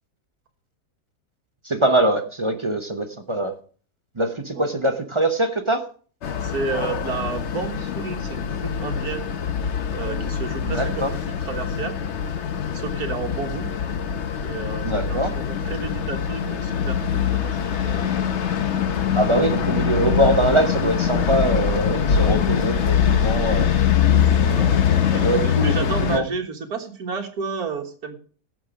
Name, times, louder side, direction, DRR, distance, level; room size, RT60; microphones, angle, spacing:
voice 1, 1.6-3.5 4.2-5.8 10.6-11.1 14.8-15.3 19.1-23.7 25.2-25.7 26.0-26.2, right 1 dB, 30° right, 6 dB, 0.6 m, -23 dB
sound 1, 6.2-26.2, left 8 dB, 50° left, 1.0 m, -23 dB
voice 2, 6.4-9.3 9.9-11.9 12.7-13.7 14.4-18.1 23.8-23.9 24.4-24.8 25.1-28.2, right 5 dB, 65° right, 3 dB, 2.0 m, -31 dB
16.5 x 6.4 x 5.0 m, 0.43 s
omnidirectional pair, 1.8 m